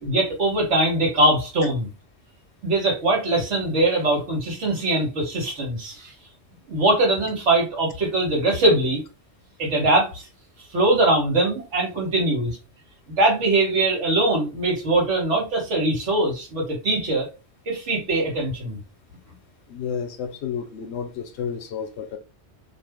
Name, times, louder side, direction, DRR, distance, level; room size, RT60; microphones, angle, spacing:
voice 1, 0.0-1.9 2.6-6.1 6.7-9.0 9.6-10.3 10.7-12.6 13.2-17.3 17.7-18.8, right 2 dB, 80° right, 1.5 m, -22 dB
voice 2, 19.7-22.2, left 7 dB, 70° left, 0.8 m, -31 dB
2.6 x 2.4 x 3.4 m
omnidirectional pair, 1.2 m